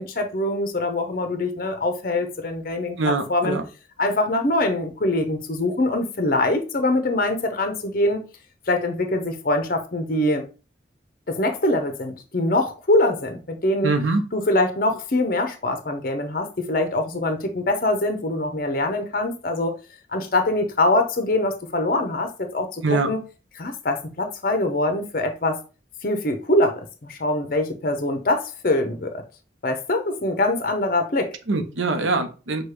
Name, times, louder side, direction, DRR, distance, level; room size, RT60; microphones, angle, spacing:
voice 1, 0.0-3.6 4.0-8.2 8.7-10.5 11.3-13.9 14.3-19.7 20.1-23.2 23.6-25.6 26.0-29.2 29.6-31.4, left 1 dB, 50° left, 0.7 m, -23 dB
voice 2, 3.0-3.6 13.8-14.2 22.8-23.1 31.5-32.6, right 3 dB, 90° right, 0.7 m, -23 dB
6.1 x 2.3 x 3.3 m
head